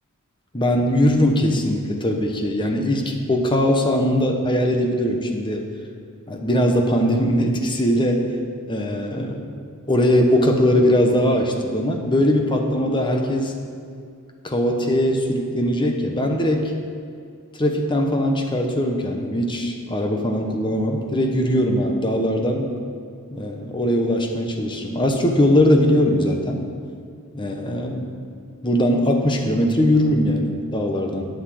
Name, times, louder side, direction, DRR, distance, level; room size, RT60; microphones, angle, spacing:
voice 1, 0.5-5.7 6.3-8.2 8.7-9.4 9.9-13.5 14.4-16.7 17.6-22.7 23.3-26.6 27.3-28.2 28.6-31.3, equal, 20° left, 2 dB, 1.1 m, -20 dB
8.5 x 8.2 x 7.6 m, 2.3 s
head